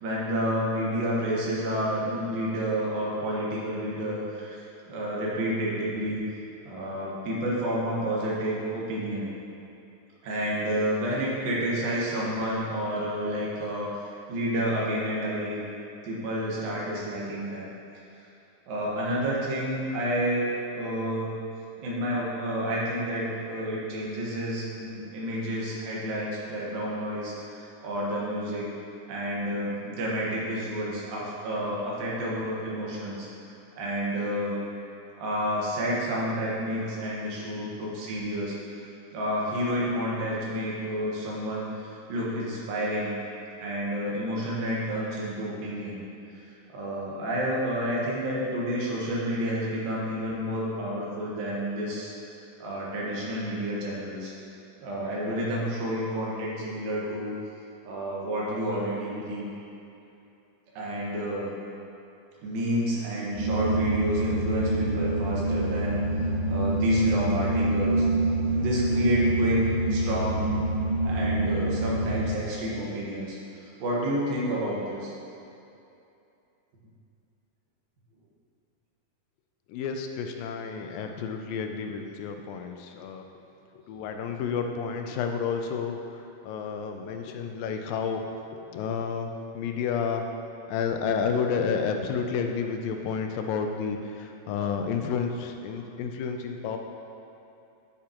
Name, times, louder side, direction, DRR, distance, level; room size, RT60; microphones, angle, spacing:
voice 1, 0.0-4.6 4.9-6.2 6.7-9.3 10.2-15.6 16.0-17.7 18.7-20.5 20.7-21.3 21.8-28.7 29.1-33.3 33.8-34.6 35.2-38.6 39.1-43.2 43.6-46.0 46.7-52.1 52.6-54.3 54.8-57.4 57.8-59.4 60.8-61.5 62.4-66.0 66.5-68.1 68.5-70.4 71.0-75.1, equal, 85° right, -5 dB, 3.3 m, -30 dB
sound 1, 63.4-72.3, right 1 dB, 60° right, 2.5 m, -26 dB
voice 2, 79.7-83.3 83.7-88.3 88.5-90.3 90.7-96.8, left 6 dB, 85° left, 4 dB, 2.4 m, -30 dB
10.5 x 8.4 x 3.0 m, 2.7 s
omnidirectional pair, 4.0 m